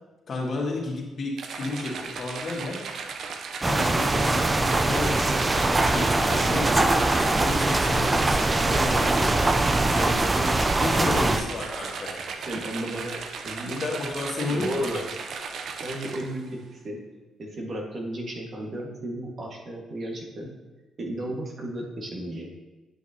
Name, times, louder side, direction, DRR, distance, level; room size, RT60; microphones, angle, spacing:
voice 1, 0.3-2.8 3.6-6.8 7.4-9.5 9.9-10.2 10.8-12.1 13.8-15.0, left 2 dB, 50° left, -2 dB, 2.0 m, -32 dB
sound 1, 1.4-16.5, right 5 dB, 65° right, 0.6 m, -36 dB
sound 2, 3.6-11.4, right 2 dB, 25° right, 0.5 m, -22 dB
voice 2, 9.8-10.7 11.2-11.4 12.4-13.2 13.4-13.8 14.4-15.0 15.8-17.0 17.4-20.5 21.0-22.5, right 1 dB, 50° right, -1 dB, 1.6 m, -34 dB
9.5 x 5.9 x 2.9 m, 1.1 s
supercardioid pair, 70°, 0 cm